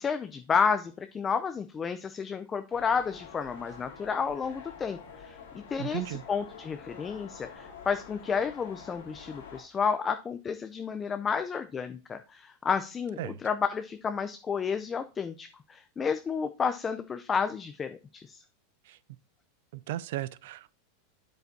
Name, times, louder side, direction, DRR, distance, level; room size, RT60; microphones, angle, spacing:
voice 1, 0.0-18.4, left 6 dB, 25° left, 0.5 m, -31 dB
sound 1, 2.7-9.6, left 5 dB, 80° left, 3.2 m, -47 dB
voice 2, 5.8-6.2 13.2-13.4 18.8-19.0 19.7-20.8, right 14 dB, 70° right, 0.4 m, -36 dB
8.0 x 6.9 x 2.7 m
hypercardioid pair, 110°, 0 cm